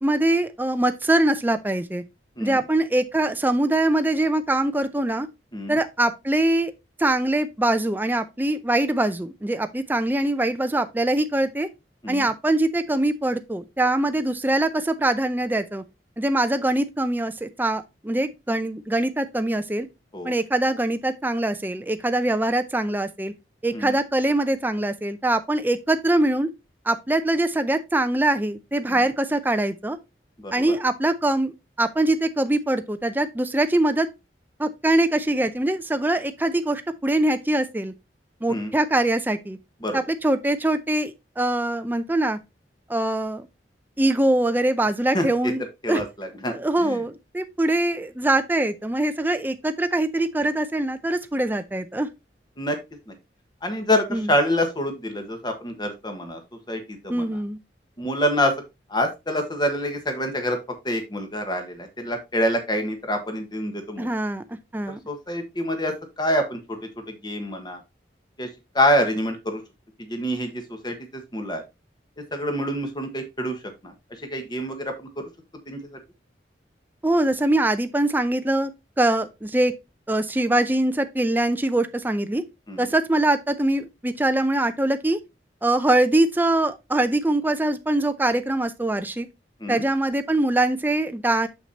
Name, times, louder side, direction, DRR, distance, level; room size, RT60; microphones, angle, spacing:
voice 1, 0.0-2.0 2.4-5.3 5.7-6.7 7.0-11.7 12.1-15.8 16.2-19.9 20.2-23.3 23.6-26.5 26.9-30.0 30.5-31.5 31.8-34.1 34.6-37.9 38.4-39.6 39.9-42.4 42.9-43.5 44.0-46.0 46.5-52.1 54.1-54.3 57.1-57.6 64.0-64.4 64.7-65.0 77.0-78.7 79.0-79.7 80.1-82.4 82.8-85.2 85.6-89.3 89.7-91.5, right 1 dB, 10° right, 0.5 m, -23 dB
voice 2, 45.8-46.5 46.8-47.0 52.6-52.8 53.6-56.4 56.7-57.2 58.0-58.5 58.9-60.6 60.8-64.1 65.1-66.8 67.2-67.8 68.4-68.5 68.7-69.6 70.0-70.9 71.3-71.6 72.3-73.6 73.8-73.9 74.3-75.2 75.7-75.8 82.7-82.9 89.6-89.8, equal, 25° left, 1.3 m, -26 dB
6.6 x 6.1 x 2.8 m
head